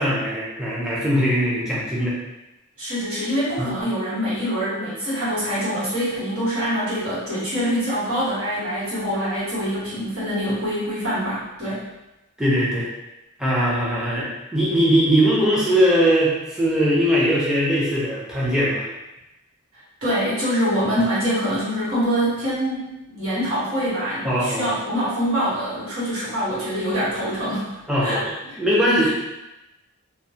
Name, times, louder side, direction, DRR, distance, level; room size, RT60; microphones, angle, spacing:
voice 1, 0.0-2.1 3.6-3.7 12.4-12.9 13.4-18.9 24.2-24.7 27.9-28.2 28.6-29.1, equal, 5° right, -7 dB, 0.5 m, -20 dB
voice 2, 2.8-11.8 20.0-27.7 28.0-28.2 29.0-29.1, equal, 70° right, -11 dB, 1.3 m, -24 dB
2.2 x 2.1 x 2.7 m, 0.97 s
head